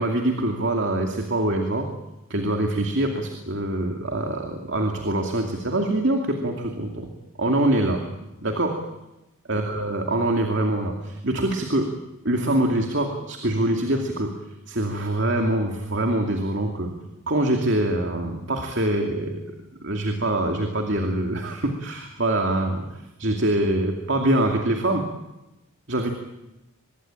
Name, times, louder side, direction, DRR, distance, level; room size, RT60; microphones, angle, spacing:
voice 1, 0.0-1.9 2.3-7.1 7.4-8.0 8.4-8.8 9.5-11.9 12.2-14.3 14.7-16.9 17.3-19.4 19.8-25.1 25.9-26.1, right 1 dB, 55° right, 4 dB, 2.5 m, -24 dB
25.0 x 21.5 x 8.9 m, 0.97 s
head